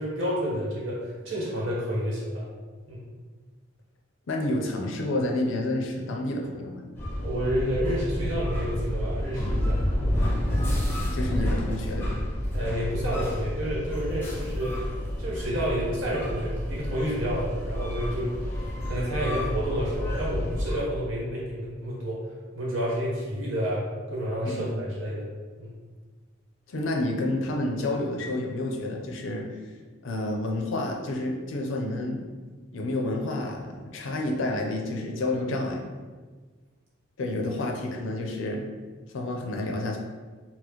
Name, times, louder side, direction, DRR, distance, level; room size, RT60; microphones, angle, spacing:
voice 1, 0.0-2.4 2.9-3.0 7.2-10.2 12.5-14.8 15.2-22.2 22.5-23.8 24.1-25.2 25.6-25.7, equal, 80° right, -6 dB, 1.1 m, -30 dB
voice 2, 4.3-6.8 11.0-12.2 24.4-24.7 26.7-29.5 30.0-32.3 32.7-35.8 37.2-38.6 39.1-40.0, left 2 dB, 75° left, 1 dB, 0.5 m, -29 dB
sound 1, 6.9-20.8, equal, 10° left, 0.6 m, -29 dB
4.2 x 2.0 x 2.9 m, 1.4 s
head